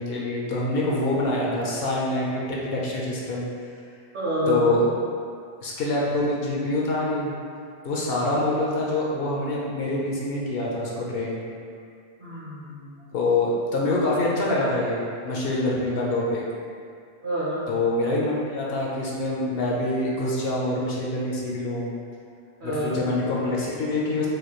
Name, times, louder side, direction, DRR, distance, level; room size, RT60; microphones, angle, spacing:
voice 1, 0.0-3.5 4.5-4.8 5.6-7.3 7.8-11.4 13.1-16.4 17.7-21.9 22.6-24.3, left 2 dB, 65° left, -4 dB, 0.8 m, -25 dB
voice 2, 4.1-4.8 12.2-13.1 17.2-17.7 22.6-23.0, left 1 dB, 50° right, -8 dB, 1.1 m, -27 dB
4.9 x 2.3 x 3.0 m, 2.2 s
omnidirectional pair, 1.1 m